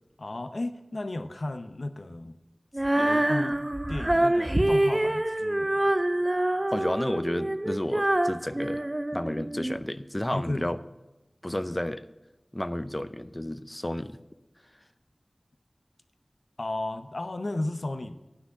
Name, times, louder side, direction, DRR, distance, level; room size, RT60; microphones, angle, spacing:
voice 1, 0.2-2.4 2.9-3.6 3.9-5.9 10.3-10.8 11.5-11.6 16.6-18.1, left 2 dB, 90° left, 10 dB, 0.6 m, -34 dB
Female singing, 2.7-9.8, right 1 dB, 35° right, 0.3 m, -26 dB
voice 2, 6.7-8.9 9.1-10.8 11.4-12.0 12.5-14.2, left 1 dB, 25° left, 13 dB, 0.6 m, -31 dB
10.0 x 6.1 x 8.4 m, 1.0 s
wide cardioid pair, 45°, 0 cm